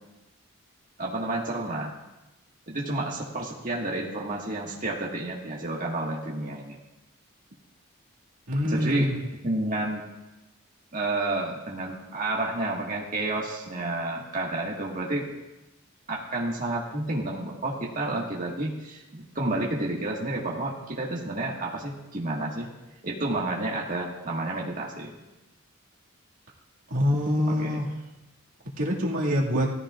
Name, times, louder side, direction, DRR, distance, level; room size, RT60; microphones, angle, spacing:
voice 1, 1.0-1.9 2.7-6.8 8.7-9.1 9.4-10.0 10.9-15.2 16.1-22.7 23.0-25.1 27.4-27.8, right 2 dB, 40° right, -3 dB, 1.7 m, -30 dB
voice 2, 8.5-9.2 26.9-27.9 28.8-29.7, left 1 dB, 80° right, -4 dB, 2.1 m, -25 dB
17.5 x 14.5 x 2.5 m, 1.0 s
head